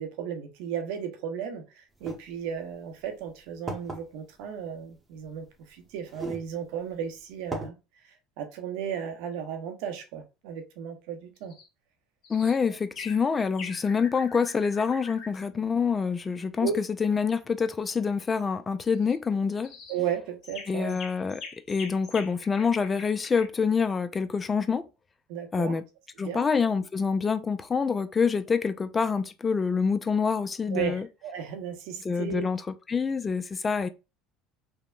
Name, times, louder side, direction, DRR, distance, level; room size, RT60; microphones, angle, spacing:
voice 1, 0.0-7.8 8.0-11.5 16.6-16.7 19.9-21.0 25.3-25.8 26.2-26.4 30.7-32.5, right 8 dB, 75° right, 0.7 m, -35 dB
sound 1, 2.0-2.2 3.0-3.1 3.7-4.0 5.2-5.3 6.1-6.5 6.9-7.0 7.5-7.7, right 2 dB, 20° right, 0.8 m, -35 dB
sound 2, 11.4-11.7 12.2-12.6 13.0-13.2 13.6-15.4 18.9-19.1 19.6-20.0 20.4-23.5, left 5 dB, 55° left, 1.0 m, -43 dB
voice 2, 12.3-16.7 17.0-19.7 20.7-21.4 21.7-24.8 25.5-25.8 26.2-31.1 32.0-32.6 32.9-33.9, left 5 dB, 25° left, 0.3 m, -26 dB
3.5 x 2.0 x 2.3 m
supercardioid pair, 85°, 0 cm